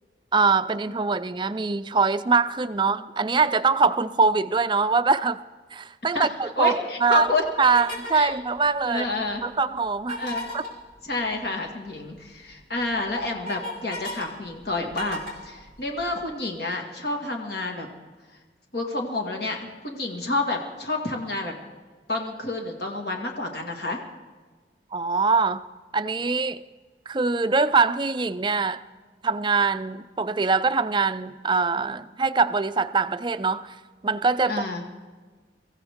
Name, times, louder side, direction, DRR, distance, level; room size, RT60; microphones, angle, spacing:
voice 1, 0.3-5.4 5.7-7.3 7.6-9.1 9.4-10.3 10.5-10.6 24.9-25.7 25.9-26.6 27.1-28.8 29.2-33.7 34.0-34.5, right 4 dB, 25° right, 13 dB, 0.4 m, -23 dB
voice 2, 6.6-7.5 8.1-8.3 8.9-9.4 10.2-10.4 11.0-17.9 18.7-21.5 22.1-24.0 34.5-34.8, left 2 dB, 60° left, 2 dB, 1.8 m, -29 dB
sound 1, 7.6-8.2 10.0-10.7 12.3-12.4 12.8-14.2 14.6-16.2, left 1 dB, 85° left, 4.6 m, -34 dB
24.0 x 15.0 x 3.6 m, 1.4 s
head